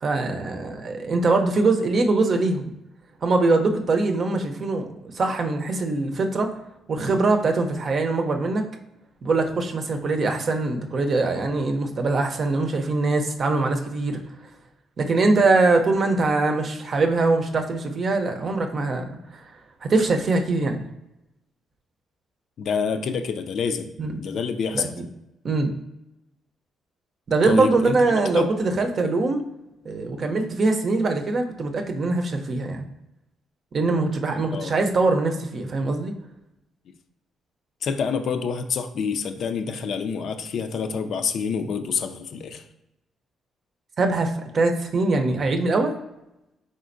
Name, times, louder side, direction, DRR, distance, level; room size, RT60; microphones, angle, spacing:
voice 1, 0.0-2.7 3.2-4.9 5.1-6.5 6.9-8.7 9.2-14.2 15.0-19.4 19.8-20.8 24.0-24.2 24.7-24.9 25.4-25.7 27.3-29.4 29.8-32.9 33.7-36.1 44.0-46.0, right 3 dB, 50° right, 5 dB, 0.6 m, -22 dB
voice 2, 22.6-25.0 27.4-28.5 34.5-34.7 36.9-37.0 37.8-42.6, left 6 dB, 65° left, 8 dB, 0.4 m, -27 dB
4.2 x 3.7 x 2.5 m, 0.90 s
cardioid pair, 90°, 0 cm